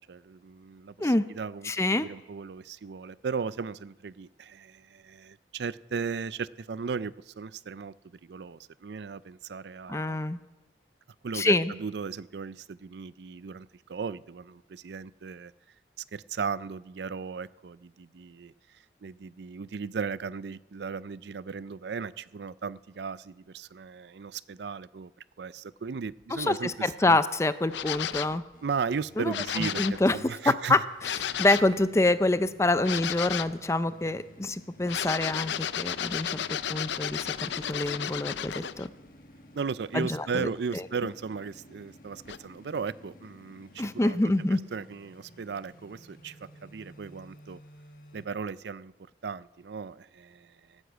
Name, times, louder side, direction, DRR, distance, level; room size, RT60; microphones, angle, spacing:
voice 1, 0.0-10.2 11.2-15.5 16.1-18.5 19.0-25.1 25.4-26.7 27.0-27.2 28.6-30.8 39.5-44.3 44.7-46.4 46.6-47.6 48.1-48.9 49.2-50.8, right 5 dB, 75° right, 18 dB, 0.5 m, -36 dB
voice 2, 1.6-2.1 9.9-10.4 11.3-11.7 26.3-28.4 29.2-30.2 30.7-36.4 36.7-38.9 39.9-40.5 43.8-44.6, left 2 dB, 15° left, 13 dB, 0.4 m, -26 dB
sound 1, 27.7-28.4 29.3-30.0 31.0-31.7 32.8-33.6 34.8-38.9 42.2-42.4, left 9 dB, 85° left, 0.6 m, -33 dB
sound 2, 28.5-48.3, equal, 50° left, 1.6 m, -54 dB
17.5 x 9.9 x 8.1 m, 1.1 s
head